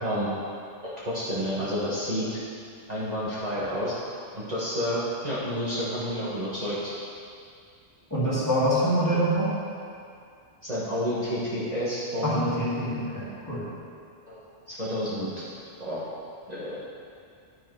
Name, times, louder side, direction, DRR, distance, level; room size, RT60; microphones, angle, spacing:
voice 1, 0.8-2.4 2.9-3.9 4.3-6.9 10.6-12.9 14.3-14.4 14.7-15.3 15.8-16.0 16.5-16.8, equal, 35° right, -9 dB, 1.4 m, -30 dB
voice 2, 8.1-9.5 12.2-13.6, right 1 dB, 15° left, -10 dB, 2.1 m, -25 dB
10.0 x 4.9 x 4.7 m, 2.3 s
omnidirectional pair, 1.2 m